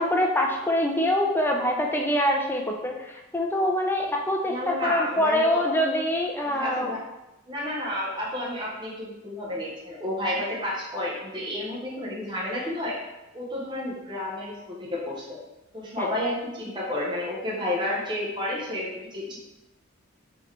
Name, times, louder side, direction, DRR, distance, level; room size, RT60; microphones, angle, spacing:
voice 1, 0.0-6.9 16.0-16.1, left 1 dB, 10° left, 1 dB, 0.4 m, -25 dB
voice 2, 4.4-5.7 6.4-7.0 7.5-13.0 13.3-15.4 15.7-19.4, left 1 dB, 25° right, -5 dB, 0.8 m, -31 dB
3.9 x 2.9 x 3.1 m, 0.97 s
head